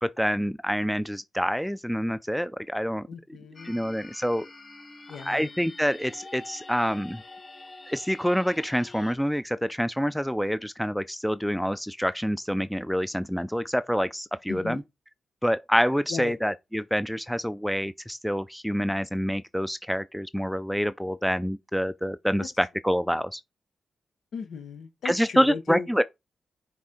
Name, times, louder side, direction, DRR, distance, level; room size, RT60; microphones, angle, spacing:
voice 1, 0.0-3.1 3.6-4.5 5.2-7.2 7.9-14.8 15.4-23.4 25.0-26.0, equal, ahead, 0.4 m, -27 dB
voice 2, 3.1-3.8 5.1-5.5 14.5-14.8 16.1-16.3 22.4-22.5 24.3-25.9, left 6 dB, 80° left, 0.8 m, -36 dB
sound 1, 3.6-9.1, left 2 dB, 40° left, 0.9 m, -46 dB
6.1 x 4.0 x 4.3 m
cardioid pair, 60°, 0 cm